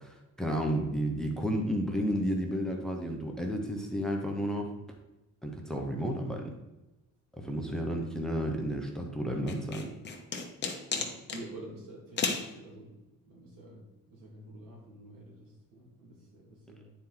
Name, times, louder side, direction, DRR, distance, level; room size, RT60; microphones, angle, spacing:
voice 1, 0.0-4.7 5.4-6.5 7.4-9.9, equal, ahead, 2 dB, 0.8 m, -32 dB
sound 1, 9.5-11.4 12.2-12.5, left 4 dB, 30° left, 0.9 m, -33 dB
voice 2, 10.9-13.0 13.3-16.9, right 1 dB, 85° right, -1 dB, 2.3 m, -48 dB
9.3 x 4.3 x 3.9 m, 0.99 s
cardioid pair, 145°, 33 cm